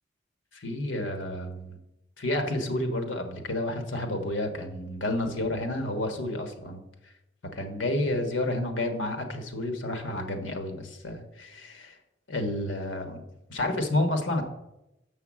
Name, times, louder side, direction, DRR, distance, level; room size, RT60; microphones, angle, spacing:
voice 1, 0.5-1.8 2.2-6.8 7.5-12.0 12.3-13.2 13.5-14.4, left 1 dB, 90° left, 6 dB, 1.4 m, -30 dB
7.1 x 5.7 x 7.3 m, 0.91 s
head